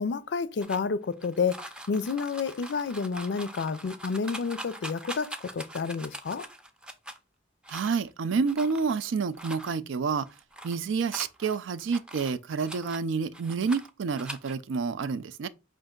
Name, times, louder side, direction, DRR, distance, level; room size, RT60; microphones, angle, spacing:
voice 1, 0.0-6.4, left 5 dB, 65° left, 0.4 m, -30 dB
sound 1, 0.6-7.2 7.6-8.1 8.5-9.0 9.3-9.7 10.2-10.8 11.1-13.0 13.3-13.9 14.2-14.5, right 1 dB, 5° right, 0.4 m, -42 dB
voice 2, 7.7-10.3 10.6-15.5, right 5 dB, 80° right, 0.4 m, -29 dB
5.2 x 2.5 x 3.7 m
head